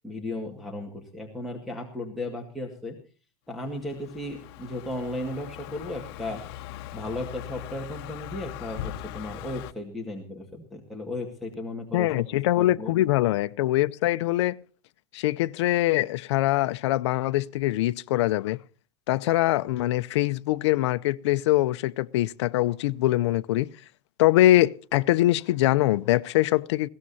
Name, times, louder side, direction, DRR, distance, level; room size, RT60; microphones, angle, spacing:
voice 1, 0.0-3.0 3.5-6.4 6.9-12.1 12.6-12.9, left 1 dB, ahead, 2.0 m, -35 dB
Car passing by, 3.7-9.7, left 12 dB, 60° left, 1.1 m, -40 dB
voice 2, 11.9-14.6 15.1-18.6 19.1-23.7 24.2-26.9, left 15 dB, 85° left, 0.6 m, -23 dB
20.5 x 16.5 x 2.8 m
supercardioid pair, 160°, 14 cm